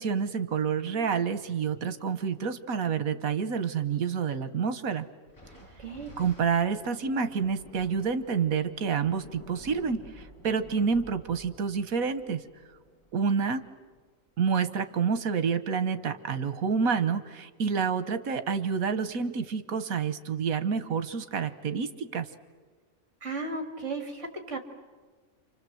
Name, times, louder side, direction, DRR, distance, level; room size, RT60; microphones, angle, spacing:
voice 1, 0.0-5.1 6.2-12.4 13.1-13.6 14.4-22.3, right 6 dB, 85° right, 11 dB, 1.6 m, -28 dB
Thunder, 5.3-14.0, equal, 20° left, 7.5 m, -51 dB
voice 2, 5.8-6.1 23.2-24.6, right 3 dB, 60° right, 5 dB, 3.0 m, -35 dB
28.5 x 26.0 x 7.8 m, 1.4 s
omnidirectional pair, 1.4 m